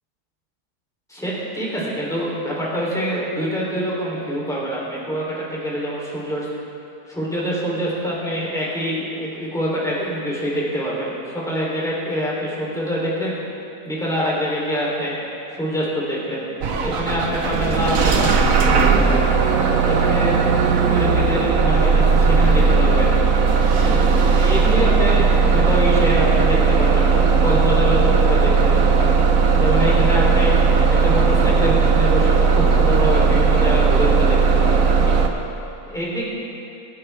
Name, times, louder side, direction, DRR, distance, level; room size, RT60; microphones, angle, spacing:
voice 1, 1.1-6.5 7.1-13.4 13.8-15.1 15.5-16.5 16.8-19.3 19.9-23.2 23.8-29.1 29.5-30.6 30.9-35.1 35.9-36.3, equal, ahead, -6 dB, 3.2 m, -25 dB
Bus / Engine starting, 16.6-35.3, right 5 dB, 60° right, 1.3 m, -17 dB
25.0 x 9.6 x 3.4 m, 2.9 s
omnidirectional pair, 1.6 m